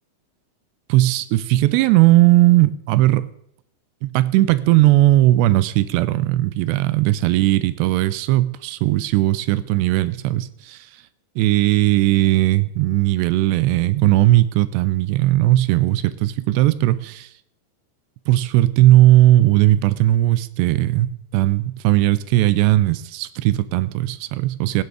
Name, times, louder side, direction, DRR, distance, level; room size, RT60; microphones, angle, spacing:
voice 1, 0.9-3.3 4.0-10.9 11.4-17.3 18.3-24.8, right 16 dB, 80° right, 2.6 m, -17 dB
16.0 x 9.4 x 4.8 m
omnidirectional pair, 5.1 m